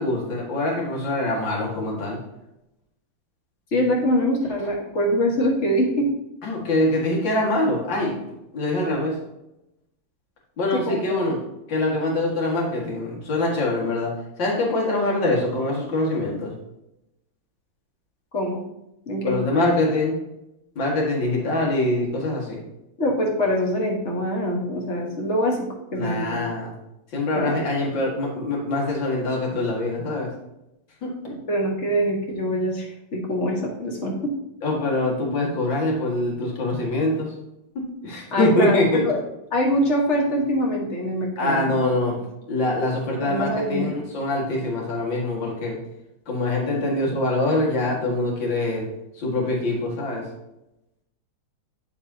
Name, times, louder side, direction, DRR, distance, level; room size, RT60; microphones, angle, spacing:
voice 1, 0.0-2.2 6.4-8.2 8.5-9.2 10.6-11.4 11.7-16.5 19.2-20.2 20.8-22.6 25.9-26.7 27.1-30.3 31.0-31.3 34.6-37.3 37.8-39.0 41.4-42.2 42.5-45.8 46.3-48.9 49.2-50.3, left 2 dB, 60° left, -3 dB, 2.6 m, -24 dB
voice 2, 3.7-6.1 10.7-11.3 18.3-18.6 19.1-19.4 23.0-25.7 25.9-26.4 27.3-27.6 31.3-34.3 38.3-39.2 39.5-41.8 42.7-42.8 43.2-44.0, equal, 35° left, -1 dB, 1.6 m, -24 dB
9.8 x 7.0 x 2.8 m, 0.90 s
omnidirectional pair, 2.3 m